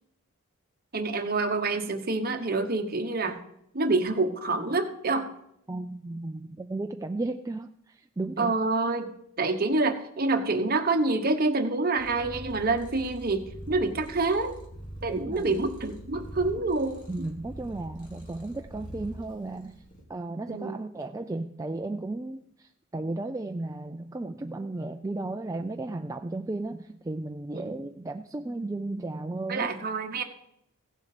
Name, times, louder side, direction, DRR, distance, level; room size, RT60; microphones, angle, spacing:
voice 1, 0.9-3.4 3.7-5.3 8.4-9.1 9.4-14.6 15.0-17.0 20.5-20.8 27.5-27.8 29.5-30.2, right 3 dB, 45° right, 6 dB, 1.1 m, -27 dB
voice 2, 5.7-8.5 15.1-15.5 17.1-19.8 20.1-29.7, right 2 dB, 15° right, 5 dB, 0.3 m, -34 dB
Purr, 12.0-20.0, right 1 dB, 35° left, 2.4 m, -44 dB
16.0 x 7.4 x 5.0 m, 0.76 s
head